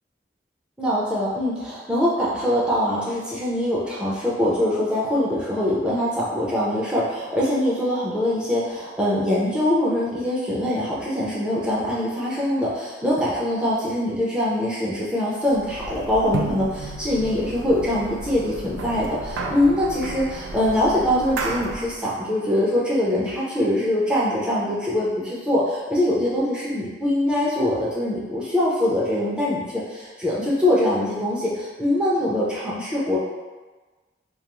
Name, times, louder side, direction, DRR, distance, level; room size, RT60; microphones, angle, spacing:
voice 1, 0.8-33.2, left 1 dB, 5° right, -7 dB, 0.3 m, -23 dB
sound 1, 15.5-22.0, right 2 dB, 90° right, 0.3 m, -33 dB
2.3 x 2.2 x 2.9 m, 1.3 s
head